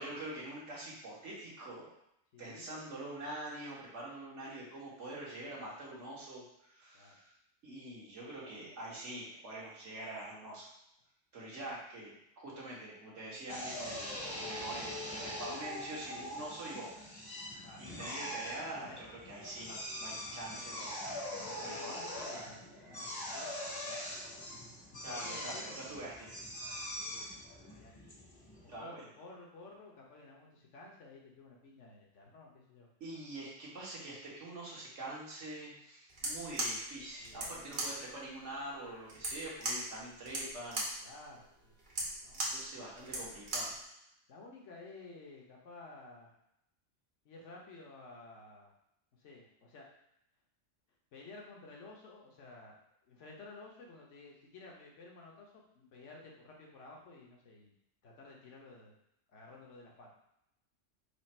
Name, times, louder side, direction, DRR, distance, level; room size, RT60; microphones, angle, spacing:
voice 1, 0.0-1.9 2.4-7.3 7.6-10.7 11.3-16.9 17.8-21.2 21.6-22.0 25.0-26.3 28.7-28.9 33.0-40.8 42.5-43.7, right 1 dB, 70° right, -5 dB, 1.7 m, -45 dB
voice 2, 2.3-2.7 6.9-7.2 17.6-19.0 20.1-21.0 21.3-24.4 24.9-26.1 26.9-27.3 27.6-27.9 28.6-32.9 37.2-37.9 41.0-41.7 42.2-42.6 44.3-46.3 47.2-48.7 49.1-49.9 51.1-52.8 53.0-57.7 58.0-58.9 59.3-60.1, left 3 dB, 75° left, -2 dB, 1.3 m, -54 dB
Drill, 13.5-28.8, left 1 dB, 20° left, 0.7 m, -43 dB
sound 1, 36.1-43.8, right 1 dB, 50° right, 1.1 m, -39 dB
4.9 x 2.5 x 4.3 m, 0.79 s
omnidirectional pair, 1.3 m